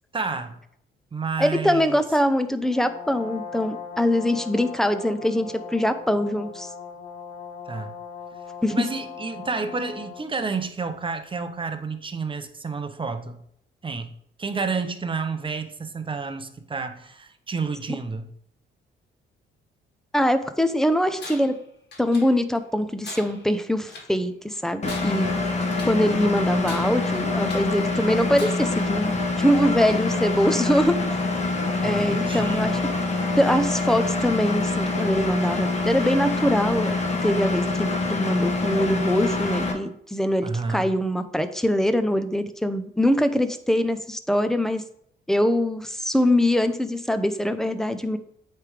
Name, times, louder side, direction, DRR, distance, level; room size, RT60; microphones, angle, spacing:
voice 1, 0.1-0.6 1.1-2.0 7.7-8.0 8.7-13.4 13.8-14.1 14.4-18.3 31.8-32.7 40.4-40.9, right 4 dB, 25° right, 8 dB, 0.8 m, -30 dB
voice 2, 1.4-6.7 8.6-8.8 20.1-21.5 22.0-25.4 25.8-30.9 31.8-32.8 33.4-37.0 37.2-44.8 45.3-48.2, equal, ahead, 9 dB, 0.6 m, -23 dB
Brass instrument, 2.6-10.4, left 6 dB, 85° left, 1.1 m, -39 dB
Tools, 21.2-21.6 21.9-22.6 23.0-24.2 24.7-26.1 26.6-27.8 28.3-28.8, left 3 dB, 60° left, 1.6 m, -42 dB
Engine, 24.8-39.7, left 3 dB, 35° left, 1.2 m, -25 dB
8.2 x 3.4 x 5.0 m, 0.69 s
cardioid pair, 90°, 20 cm